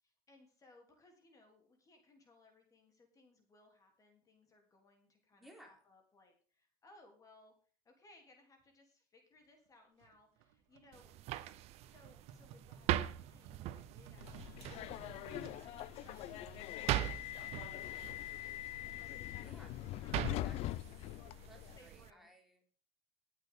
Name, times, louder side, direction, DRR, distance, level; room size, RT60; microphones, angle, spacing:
voice 1, 0.0-7.5 7.8-11.1 11.5-19.3 20.0-20.6 21.7-22.3, left 2 dB, 30° left, 3 dB, 3.4 m, -66 dB
voice 2, 5.3-5.8 19.4-19.8 20.2-21.2 21.4-22.6, right 1 dB, ahead, 1 dB, 3.7 m, -60 dB
sound 1, 10.0-15.6, right 7 dB, 80° right, 2.0 m, -57 dB
sound 2, 10.9-22.1, right 14 dB, 60° right, 0.9 m, -42 dB
Subway metro underground, 14.2-21.8, left 15 dB, 60° left, 0.6 m, -43 dB
19.5 x 8.5 x 3.8 m, 0.42 s
cardioid pair, 130°, 12 cm